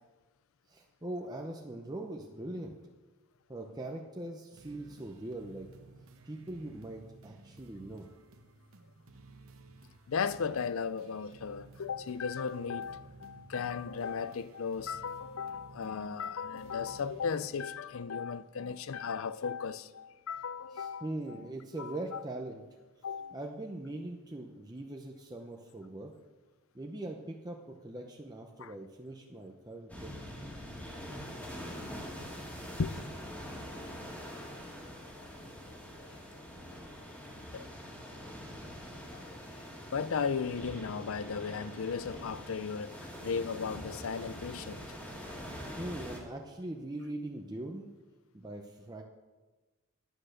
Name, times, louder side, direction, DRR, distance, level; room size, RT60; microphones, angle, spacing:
voice 1, 0.7-2.8 3.5-5.7 6.2-8.1 20.7-22.6 23.3-26.1 26.7-30.1 45.8-47.9 48.3-49.0, right 1 dB, 15° right, 0.7 m, -41 dB
sound 1, 4.5-17.6, right 3 dB, 70° right, 0.9 m, -56 dB
voice 2, 10.1-21.4 21.8-22.2 23.0-23.4 28.6-28.7 32.2-32.3 32.8-33.0 35.2-35.3 36.0-36.2 37.5-37.6 39.1-39.3 39.9-44.9, left 6 dB, 65° left, 0.5 m, -36 dB
sound 2, 29.9-46.2, equal, 5° left, 1.9 m, -44 dB
10.0 x 8.7 x 6.5 m
head